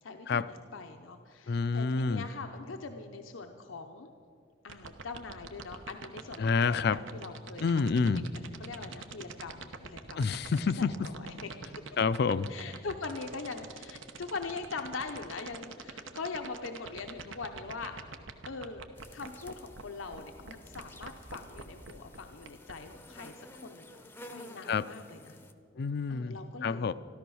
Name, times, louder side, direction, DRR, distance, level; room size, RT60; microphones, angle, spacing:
voice 1, 0.0-4.1 4.6-7.9 8.6-11.5 12.5-17.9 18.4-18.8 19.1-24.0 24.3-25.4 26.1-26.9, left 4 dB, 85° left, 5 dB, 0.7 m, -42 dB
voice 2, 1.5-2.2 6.4-7.0 7.6-8.3 10.2-10.9 12.0-12.5 24.7-24.8 25.8-26.4 26.6-26.9, left 4 dB, 55° left, 16 dB, 0.4 m, -28 dB
sound 1, 4.7-19.8 20.1-20.2 20.5-22.7, right 5 dB, 80° right, 0.9 m, -43 dB
sound 2, 19.0-25.5, left 1 dB, 10° left, 0.6 m, -52 dB
13.5 x 13.0 x 6.3 m, 2.5 s
head